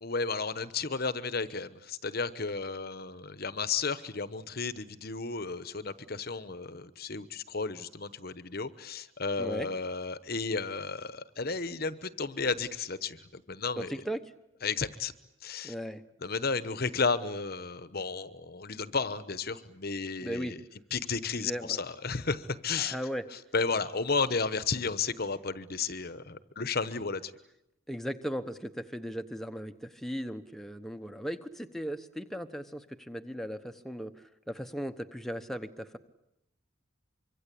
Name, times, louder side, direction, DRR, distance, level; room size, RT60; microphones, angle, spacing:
voice 1, 0.0-13.9 14.6-15.1 15.4-15.7 16.2-20.6 20.9-22.9 23.5-27.3, left 4 dB, 45° left, 14 dB, 1.0 m, -33 dB
voice 2, 9.4-9.7 13.8-14.3 15.6-16.0 20.2-20.6 21.3-21.8 22.8-23.2 27.9-36.0, equal, ahead, 6 dB, 1.0 m, -37 dB
25.0 x 24.5 x 8.5 m, 0.86 s
head